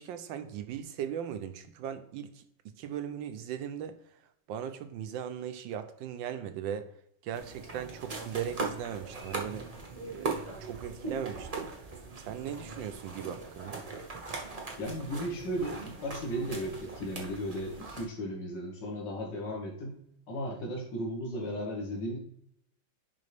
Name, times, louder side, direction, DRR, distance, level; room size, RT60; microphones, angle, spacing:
voice 1, 0.0-4.0 4.5-6.9 7.2-9.7 10.1-11.7 12.3-13.8, right 9 dB, 75° right, 10 dB, 1.2 m, -38 dB
sound 1, 7.3-18.0, right 3 dB, 35° right, 0.6 m, -40 dB
voice 2, 14.8-20.0 20.3-22.2, equal, 55° left, -2 dB, 2.3 m, -35 dB
10.5 x 3.8 x 3.4 m, 0.71 s
omnidirectional pair, 2.3 m